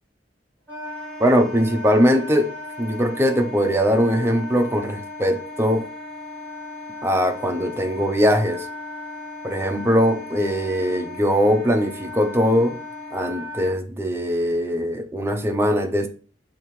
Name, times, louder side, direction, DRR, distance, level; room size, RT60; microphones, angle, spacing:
Wind instrument woodwind instrument, 0.7-13.7, left 2 dB, 10° left, 2.0 m, -36 dB
voice 1, 1.2-2.5 2.8-5.8 7.0-8.7 9.4-12.8 13.1-16.1, equal, 15° right, 5 dB, 0.6 m, -21 dB
5.2 x 2.8 x 3.1 m, 0.38 s
head